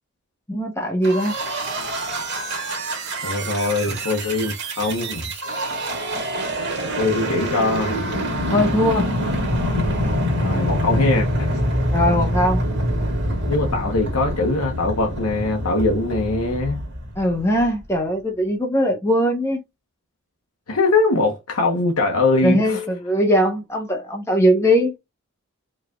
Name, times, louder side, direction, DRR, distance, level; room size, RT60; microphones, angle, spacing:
voice 1, 0.5-1.3 3.9-4.0 6.8-6.9 8.5-9.1 11.9-12.6 17.2-19.6 22.4-24.9, equal, 10° left, 0.8 m, -20 dB
sound 1, 1.0-17.7, equal, 55° right, 1.9 m, -25 dB
voice 2, 3.2-5.3 7.0-8.0 10.4-11.5 13.5-16.8 20.7-22.8, left 3 dB, 85° left, 1.0 m, -22 dB
4.9 x 3.2 x 2.3 m
head